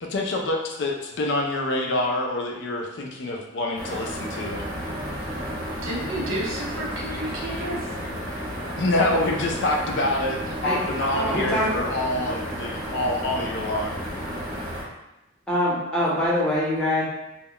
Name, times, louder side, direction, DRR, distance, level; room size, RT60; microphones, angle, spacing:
voice 1, 0.0-4.6 8.7-14.0, left 2 dB, 55° left, 1 dB, 0.4 m, -26 dB
sound 1, 3.8-14.8, equal, 40° right, 0.8 m, -33 dB
sound 2, 4.5-14.8, right 1 dB, 25° right, 0.3 m, -41 dB
voice 2, 5.8-7.9 11.0-11.5, right 1 dB, 70° right, -3 dB, 0.7 m, -30 dB
voice 3, 11.3-11.7 15.5-17.0, left 1 dB, 5° left, -9 dB, 0.7 m, -23 dB
2.2 x 2.0 x 3.7 m, 0.91 s
head